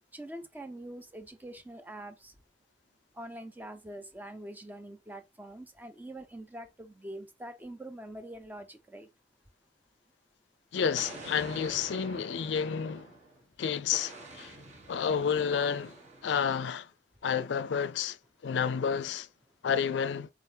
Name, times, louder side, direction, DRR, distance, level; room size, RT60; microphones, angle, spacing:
voice 1, 0.1-2.3 3.1-9.1, right 1 dB, 10° right, 0.5 m, -44 dB
voice 2, 10.7-13.1 13.6-14.6 14.9-15.9 16.2-16.9 17.2-18.2 18.4-19.3 19.6-20.3, left 7 dB, 80° left, 0.4 m, -30 dB
Explosion, 11.0-13.4 13.9-16.5, right 2 dB, 40° right, 1.2 m, -47 dB
3.7 x 3.4 x 2.7 m
head